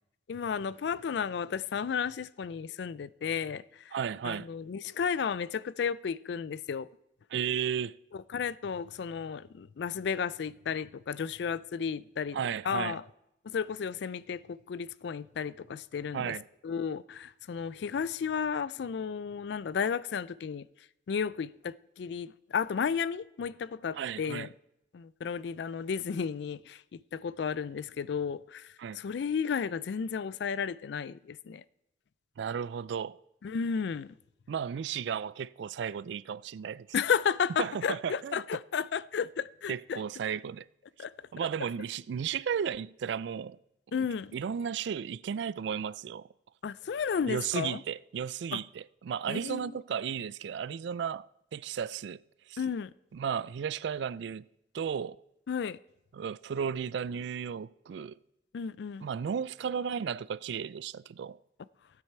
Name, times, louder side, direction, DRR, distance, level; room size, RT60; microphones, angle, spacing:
voice 1, 0.3-3.9 4.2-6.9 8.1-12.4 12.7-13.0 13.4-16.3 16.6-20.7 21.1-24.5 24.9-31.6 33.4-34.1 36.9-40.0 41.0-41.3 43.9-44.4 46.6-47.8 48.5-48.6 49.3-49.7 52.6-52.9 55.5-55.8 58.5-59.1, left 6 dB, 65° left, 0.3 m, -33 dB
voice 2, 3.9-4.5 7.3-8.0 12.3-13.0 16.1-16.4 23.9-24.5 28.8-29.0 32.4-33.2 34.5-36.9 37.6-38.4 39.7-40.7 41.3-43.6 44.3-46.3 47.3-52.2 52.5-52.6 53.1-54.5 54.7-55.2 56.1-58.2 59.0-61.4, right 7 dB, 70° right, 0.3 m, -34 dB
16.5 x 9.0 x 4.4 m
head